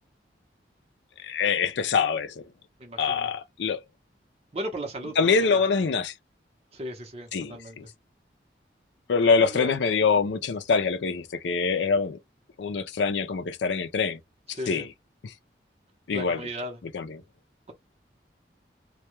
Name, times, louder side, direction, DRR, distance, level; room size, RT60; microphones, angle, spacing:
voice 1, 1.2-2.3 3.0-3.8 5.2-6.1 7.3-7.8 9.1-12.2 12.6-14.2 14.7-14.9 15.2-15.3 16.1-16.4 16.9-17.2, left 5 dB, 90° left, 0.4 m, -24 dB
voice 2, 2.8-3.3 4.5-5.5 6.7-7.8 9.4-9.7 14.5-14.9 16.1-16.8, right 1 dB, 35° right, 0.8 m, -36 dB
2.3 x 2.2 x 2.8 m
head